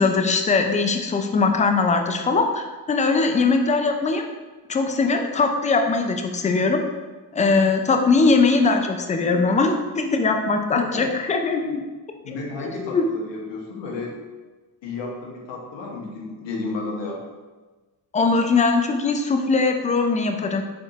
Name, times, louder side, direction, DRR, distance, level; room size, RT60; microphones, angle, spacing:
voice 1, 0.0-4.2 4.7-6.8 7.3-11.8 12.3-12.4 12.7-13.1 18.1-20.6, left 4 dB, 20° left, 5 dB, 0.3 m, -21 dB
voice 2, 10.7-11.1 11.6-11.7 12.2-14.1 14.8-17.2, left 3 dB, 65° left, -1 dB, 1.1 m, -32 dB
3.9 x 3.6 x 2.4 m, 1.3 s
supercardioid pair, 60°, 46 cm